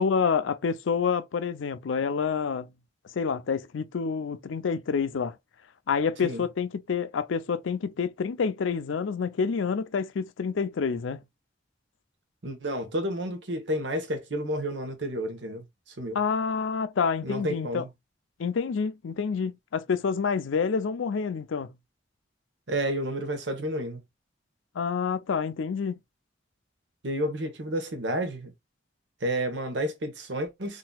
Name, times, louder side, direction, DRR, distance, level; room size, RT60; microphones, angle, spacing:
voice 1, 0.0-2.7 3.2-5.3 5.9-11.2 16.1-17.8 18.4-21.7 24.8-26.0, left 5 dB, 85° left, 0.4 m, -28 dB
voice 2, 12.4-15.6 16.0-16.2 17.2-17.9 22.7-24.0 27.0-28.5 29.2-30.8, right 1 dB, 70° right, 1.0 m, -30 dB
3.8 x 2.7 x 2.2 m
head